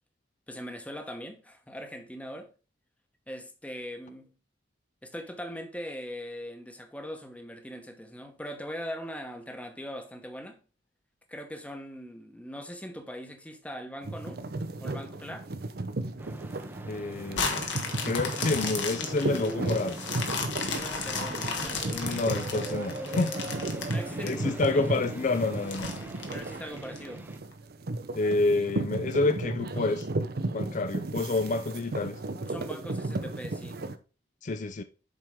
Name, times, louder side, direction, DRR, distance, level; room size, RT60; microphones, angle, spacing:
voice 1, 0.5-2.5 3.3-4.3 5.0-10.6 11.3-14.4 14.8-15.5 20.7-21.9 23.8-24.8 26.3-27.3 32.4-33.8, equal, 10° left, 1.0 m, -41 dB
sound 1, 14.0-34.0, right 2 dB, 55° right, 0.7 m, -35 dB
sound 2, 16.2-27.4, right 1 dB, 10° right, 0.7 m, -42 dB
voice 2, 16.9-17.6 18.0-20.0 21.9-23.4 24.2-25.9 28.1-30.1 30.5-32.2 34.4-34.8, left 3 dB, 45° left, 0.5 m, -28 dB
sound 3, 17.3-24.7 25.1-25.2 25.7-27.0 27.5-27.6, left 5 dB, 75° left, 1.5 m, -34 dB
7.5 x 4.6 x 3.6 m
head